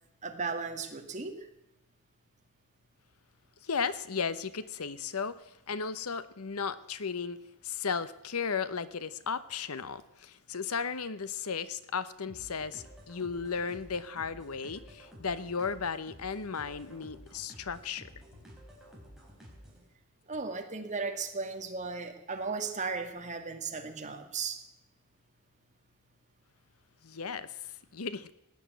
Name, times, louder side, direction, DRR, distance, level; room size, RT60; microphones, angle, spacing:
voice 1, 0.2-1.5 20.3-24.6, right 4 dB, 35° right, 5 dB, 2.0 m, -36 dB
voice 2, 3.6-5.4 5.7-7.4 7.6-18.1 27.0-28.3, left 5 dB, 80° left, 15 dB, 0.9 m, -35 dB
sound 1, 12.3-19.9, equal, ahead, 3.8 m, -52 dB
16.5 x 9.9 x 8.1 m, 0.90 s
head